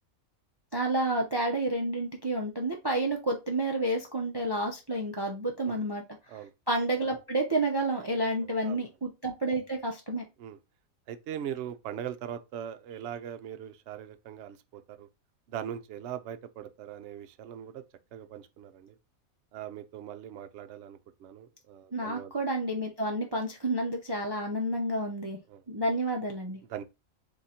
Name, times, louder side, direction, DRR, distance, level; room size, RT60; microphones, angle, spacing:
voice 1, 0.7-6.0 6.7-10.2 21.9-25.4 25.7-26.6, right 1 dB, 30° right, 0.4 m, -30 dB
voice 2, 8.4-8.9 10.4-10.6 11.1-15.1 15.5-17.8 18.1-19.0 19.5-22.3 25.5-25.6 26.7-26.8, right 10 dB, 65° right, 0.8 m, -40 dB
3.8 x 2.8 x 4.1 m
omnidirectional pair, 1.4 m